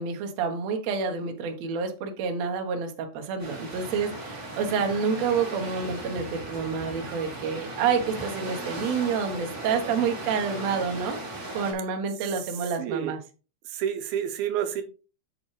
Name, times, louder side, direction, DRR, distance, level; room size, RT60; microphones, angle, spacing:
voice 1, 0.0-11.2 11.5-13.2, right 5 dB, 65° right, 4 dB, 1.8 m, -28 dB
sound 1, 3.4-11.7, right 1 dB, 30° right, 1.9 m, -37 dB
voice 2, 12.8-13.1 13.7-14.8, right 9 dB, 80° right, 8 dB, 2.6 m, -29 dB
7.8 x 6.9 x 3.2 m, 0.34 s
omnidirectional pair, 4.4 m